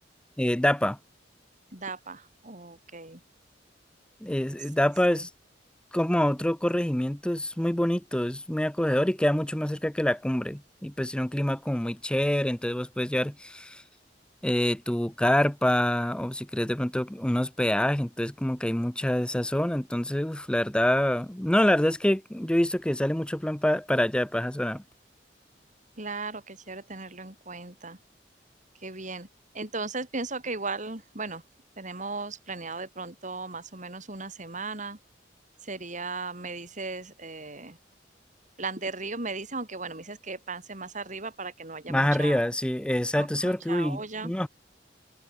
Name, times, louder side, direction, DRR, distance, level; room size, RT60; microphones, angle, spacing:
voice 1, 0.4-1.0 4.2-5.3 5.9-13.8 14.4-24.8 41.9-44.5, left 1 dB, 5° left, 0.5 m, -26 dB
voice 2, 1.7-3.2 5.1-5.3 26.0-28.0 28.8-29.3 29.5-31.4 31.8-35.0 35.6-37.8 38.6-42.4 43.1-44.3, right 3 dB, 45° right, 5.9 m, -37 dB
head